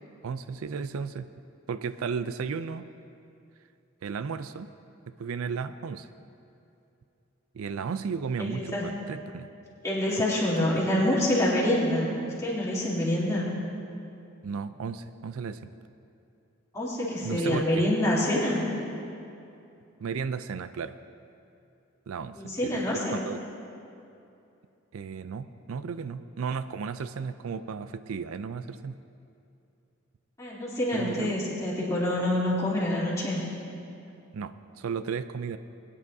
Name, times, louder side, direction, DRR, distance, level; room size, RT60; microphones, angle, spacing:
voice 1, 0.2-1.3 1.7-2.8 4.0-4.7 5.2-6.1 7.5-9.5 10.6-10.7 14.4-15.7 17.2-17.8 20.0-20.9 22.1-22.3 22.6-23.4 24.9-29.0 30.9-31.4 34.3-35.6, right 5 dB, 90° right, 12 dB, 0.4 m, -34 dB
voice 2, 8.4-9.0 9.8-13.5 16.7-18.6 22.3-23.2 30.4-33.4, left 1 dB, 15° left, -8 dB, 3.1 m, -26 dB
21.5 x 9.9 x 2.7 m, 2.7 s
head